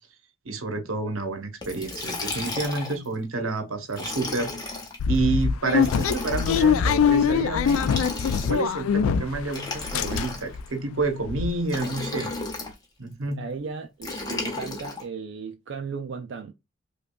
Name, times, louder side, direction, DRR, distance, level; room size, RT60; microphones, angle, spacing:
voice 1, 0.4-4.5 5.1-7.9 8.5-12.3 13.0-13.4, right 3 dB, 85° right, 0.8 m, -29 dB
Liquid, 1.6-3.1 3.9-5.0 5.8-6.7 7.6-8.7 9.5-10.7 11.7-12.7 14.0-15.0, left 3 dB, 20° left, 0.7 m, -34 dB
sound 1, 5.0-9.5 9.8-10.6 11.0-11.1 11.3-11.5, left 6 dB, 85° left, 0.3 m, -23 dB
voice 2, 13.3-16.5, right 5 dB, 60° right, 0.4 m, -36 dB
5.1 x 2.3 x 2.2 m
head